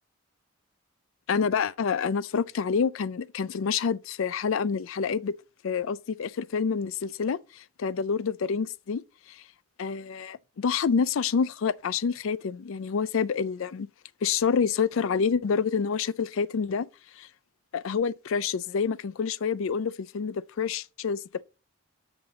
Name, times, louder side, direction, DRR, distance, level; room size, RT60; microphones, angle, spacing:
voice 1, 1.3-5.3 5.6-9.0 9.3-9.4 9.8-13.9 14.2-16.9 17.2-17.3 17.7-21.2, left 6 dB, 70° left, 0.4 m, -27 dB
7.9 x 6.8 x 3.9 m
head